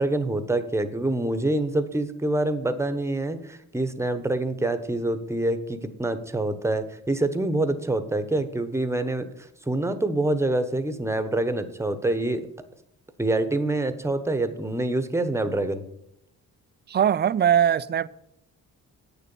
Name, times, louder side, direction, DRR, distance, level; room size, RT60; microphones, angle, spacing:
voice 1, 0.0-9.3 9.7-12.5 13.2-15.8, right 2 dB, 10° right, 1.0 m, -26 dB
voice 2, 16.9-18.1, right 9 dB, 30° right, 0.4 m, -21 dB
8.8 x 6.9 x 7.0 m
cardioid pair, 95°, 34 cm